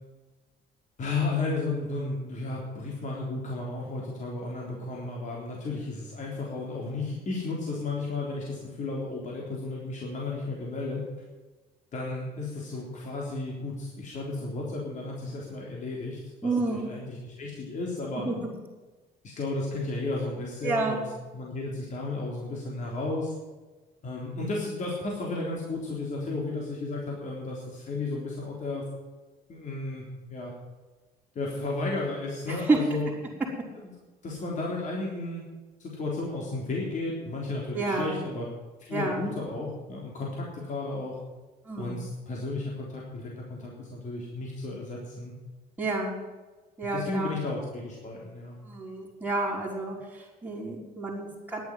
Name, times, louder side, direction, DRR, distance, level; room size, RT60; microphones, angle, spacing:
voice 1, 1.0-11.0 11.9-18.3 19.2-21.0 21.3-23.3 24.0-28.9 29.5-30.5 31.4-33.1 33.8-33.9 34.2-35.5 35.8-38.5 38.8-41.2 41.8-45.3 46.9-48.6, left 3 dB, 45° left, -3 dB, 3.6 m, -33 dB
voice 2, 16.4-16.9 18.1-18.4 20.6-21.0 32.5-32.8 37.7-38.2 38.9-39.2 41.6-42.0 45.8-46.2 46.8-47.3 48.6-51.6, right 3 dB, 10° right, -8 dB, 4.4 m, -29 dB
11.0 x 8.7 x 9.5 m, 1.2 s
cardioid pair, 110°, 17 cm